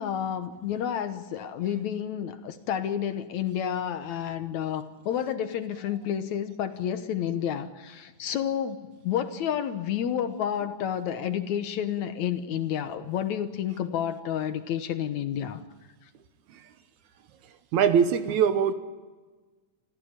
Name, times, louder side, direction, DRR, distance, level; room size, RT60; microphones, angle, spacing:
voice 1, 0.0-15.6, left 9 dB, 65° left, 10 dB, 2.1 m, -30 dB
voice 2, 17.7-18.7, right 7 dB, 70° right, 11 dB, 2.2 m, -22 dB
26.5 x 15.0 x 8.8 m, 1.3 s
omnidirectional pair, 3.8 m